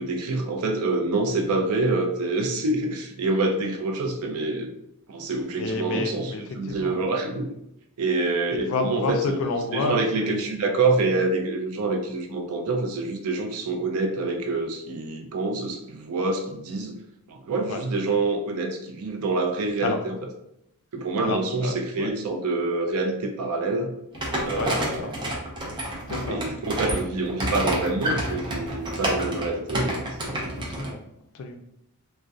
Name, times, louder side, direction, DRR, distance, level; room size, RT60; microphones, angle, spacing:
voice 1, 0.0-4.7 5.1-7.5 8.0-9.4 9.7-17.0 17.3-20.1 20.9-23.9 24.4-25.1 26.3-30.4, right 3 dB, 80° right, 4 dB, 0.4 m, -26 dB
voice 2, 5.6-7.1 8.6-10.6 17.7-17.8 19.8-20.0 21.2-22.1 24.5-25.1 26.1-26.4 26.9-27.0 30.5-31.0 31.3-31.6, left 3 dB, 65° left, 5 dB, 0.4 m, -30 dB
sound 1, 24.1-30.9, right 1 dB, 20° right, 0.5 m, -29 dB
2.3 x 2.1 x 2.6 m, 0.80 s
head